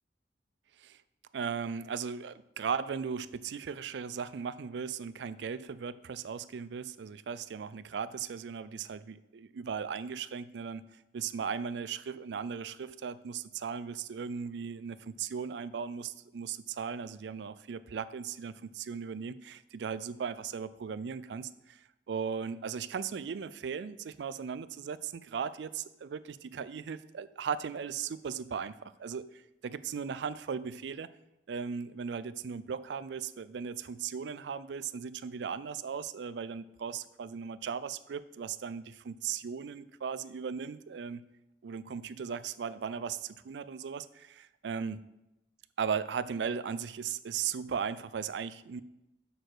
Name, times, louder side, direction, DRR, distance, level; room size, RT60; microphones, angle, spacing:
voice 1, 1.3-10.8 11.1-28.7 29.0-31.1 31.5-41.2 41.6-45.0 45.8-48.8, right 6 dB, 75° right, 16 dB, 0.4 m, -37 dB
6.4 x 6.4 x 4.8 m, 0.89 s
head